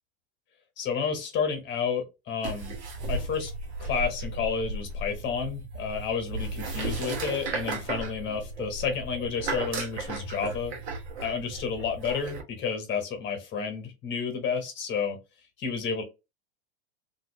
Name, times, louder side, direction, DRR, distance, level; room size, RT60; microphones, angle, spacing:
voice 1, 0.8-2.8 3.1-3.5 3.8-10.7 11.2-15.2 15.6-16.0, left 6 dB, 35° left, 1.1 m, -31 dB
sound 1, 2.4-12.4, right 3 dB, 80° right, 1.1 m, -35 dB
2.9 x 2.7 x 3.0 m
hypercardioid pair, 100°, 33 cm